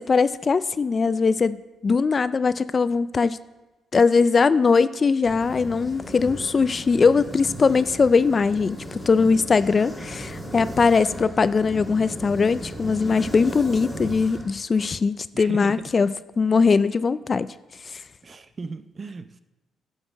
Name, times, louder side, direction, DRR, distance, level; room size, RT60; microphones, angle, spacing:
voice 1, 0.0-1.6 1.8-3.4 3.9-17.5, left 4 dB, 35° left, 16 dB, 0.3 m, -20 dB
sound 1, 5.2-14.9, equal, ahead, 2.2 m, -37 dB
voice 2, 15.3-15.7 18.2-19.4, right 4 dB, 35° right, 12 dB, 0.6 m, -36 dB
11.0 x 6.5 x 6.0 m, 1.1 s
cardioid pair, 90°, 0 cm